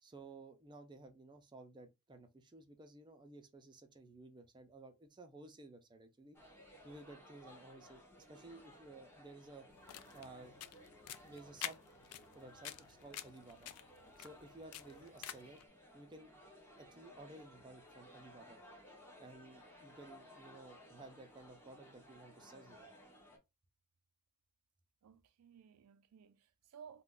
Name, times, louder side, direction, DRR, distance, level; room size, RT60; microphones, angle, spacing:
voice 1, 0.0-6.4 6.8-9.7 10.1-10.5 11.2-11.8 12.3-13.7 14.2-15.6 15.9-16.3 16.8-18.6 19.2-22.9, right 2 dB, 20° right, 0.5 m, -55 dB
sound 1, 6.3-23.4, equal, 10° left, 0.8 m, -59 dB
sound 2, 9.7-15.6, left 11 dB, 85° left, 0.3 m, -49 dB
voice 2, 25.0-27.0, right 7 dB, 90° right, 0.4 m, -58 dB
2.5 x 2.2 x 3.6 m
head